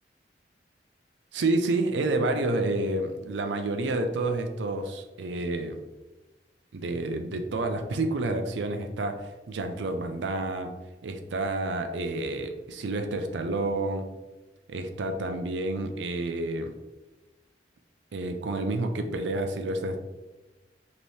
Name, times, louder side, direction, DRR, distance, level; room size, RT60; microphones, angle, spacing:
voice 1, 1.3-5.8 6.7-10.7 11.0-14.0 14.7-16.7 18.1-20.0, right 2 dB, 90° right, 6 dB, 0.5 m, -29 dB
5.2 x 2.9 x 3.2 m, 1.1 s
head